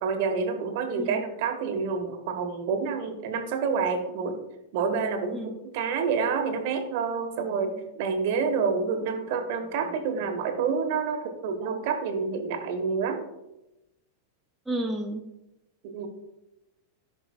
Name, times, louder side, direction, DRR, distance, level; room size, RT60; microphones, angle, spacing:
voice 1, 0.0-4.4 4.7-13.2 15.8-16.1, right 5 dB, 50° right, 6 dB, 1.1 m, -28 dB
voice 2, 14.7-15.2, right 1 dB, 5° right, 2 dB, 0.6 m, -31 dB
15.0 x 5.4 x 2.3 m, 0.93 s
figure-of-eight pair, 90°, 0 cm